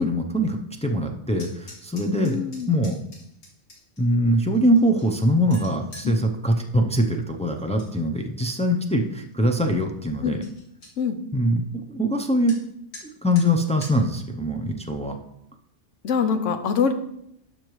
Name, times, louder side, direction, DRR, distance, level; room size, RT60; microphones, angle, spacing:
voice 1, 0.0-2.4 2.7-2.9 4.0-10.4 11.3-11.6 11.9-12.5 13.0-15.2, equal, 10° left, 3 dB, 0.4 m, -23 dB
sound 1, 1.3-4.0 4.5-6.1 7.5-7.9 8.3-8.8 9.3-9.4 9.7-9.8 10.1-10.2 10.4-10.9 12.5-12.6 12.9-13.0 13.4-13.5 13.8-13.9, left 1 dB, 65° left, 2.2 m, -45 dB
voice 2, 2.2-2.7 6.0-6.2 10.2-10.4 11.0-11.2 16.0-16.9, left 6 dB, 80° left, 9 dB, 1.1 m, -24 dB
12.0 x 5.8 x 3.2 m, 0.77 s
omnidirectional pair, 1.3 m